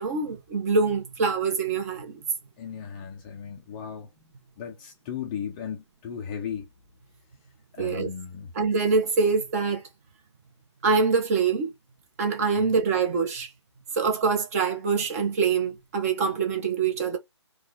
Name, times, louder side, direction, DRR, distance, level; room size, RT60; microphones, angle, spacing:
voice 1, 0.0-2.1 7.8-8.1 8.5-9.8 10.8-11.7 12.2-13.5 14.0-17.2, right 5 dB, 30° right, 1.5 m, -24 dB
voice 2, 2.6-4.1 4.6-6.7 7.7-8.5 12.6-12.7, left 7 dB, 20° left, 0.7 m, -36 dB
4.2 x 2.5 x 3.9 m
hypercardioid pair, 155°, 15 cm